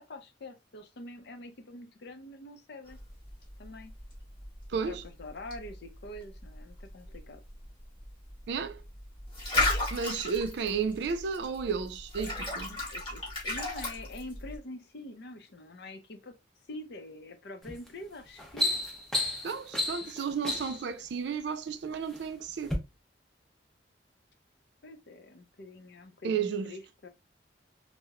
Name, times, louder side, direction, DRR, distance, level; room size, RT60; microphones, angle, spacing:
voice 1, 0.0-3.0 3.6-3.9 4.7-7.4 12.7-16.3 16.7-18.8 24.8-27.1, left 2 dB, 60° left, 0.5 m, -45 dB
sound 1, 2.9-14.6, left 2 dB, 25° left, 1.0 m, -36 dB
voice 2, 4.7-5.0 8.5-8.8 9.9-12.7 19.4-22.8 26.2-26.7, right 6 dB, 65° right, 0.3 m, -33 dB
sound 2, 17.6-17.9 18.3-20.9 21.7-22.2 22.6-22.8, left 2 dB, ahead, 0.5 m, -32 dB
2.9 x 2.0 x 2.2 m
head